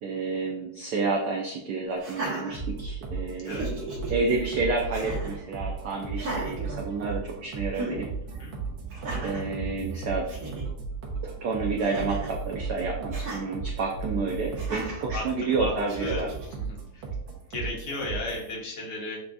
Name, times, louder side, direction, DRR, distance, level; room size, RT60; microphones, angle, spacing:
voice 1, 0.0-3.6 4.1-8.1 9.2-10.3 11.2-16.3, right 3 dB, 85° right, 0 dB, 0.8 m, -30 dB
Laughter, 2.0-3.1 3.4-4.1 4.9-5.4 6.1-7.4 7.7-8.0 8.9-9.5 10.0-10.1 10.3-10.7 11.8-12.4 13.1-13.4 14.6-15.0 15.9-16.5, right 2 dB, 45° right, 1.4 m, -36 dB
sound 1, 2.5-18.5, right 4 dB, 70° right, 1.5 m, -35 dB
voice 2, 15.1-15.7 16.0-16.2 16.6-17.0 17.5-19.2, left 2 dB, 70° left, -2 dB, 1.8 m, -35 dB
7.2 x 2.6 x 2.3 m, 0.78 s
omnidirectional pair, 2.4 m